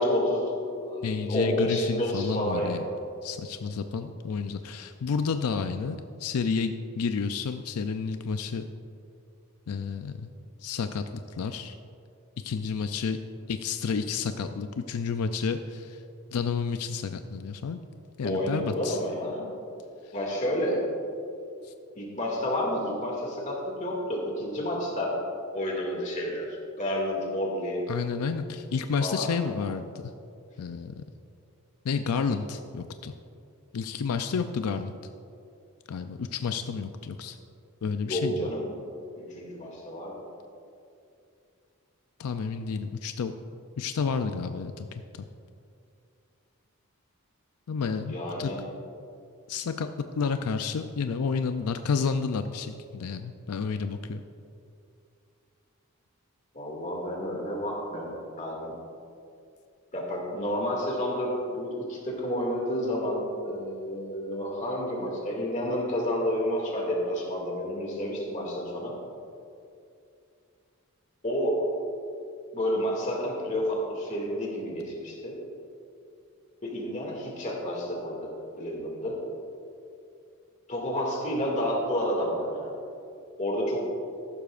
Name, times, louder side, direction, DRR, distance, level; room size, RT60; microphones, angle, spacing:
voice 1, 0.0-2.8 18.2-19.5 20.1-20.8 22.0-25.1 25.5-26.5 26.8-27.8 29.0-29.3 38.0-38.6 39.2-40.2 48.1-48.6 56.5-58.7 59.9-68.9 71.2-71.7 72.5-75.4 76.6-78.3 78.6-79.2 80.7-82.7 83.4-83.8, equal, 35° left, -2 dB, 2.2 m, -30 dB
voice 2, 1.0-2.8 3.2-8.6 9.7-10.3 10.6-11.0 11.4-11.8 12.4-13.2 13.5-16.0 16.3-17.8 18.2-19.0 21.6-21.7 27.9-30.0 30.6-31.0 31.8-33.1 33.7-34.9 35.9-37.4 37.8-38.5 42.2-43.3 43.8-45.2 47.7-48.5 49.5-49.9 50.2-54.2, left 5 dB, 90° left, 8 dB, 0.4 m, -30 dB
14.0 x 12.0 x 2.5 m, 2.5 s
head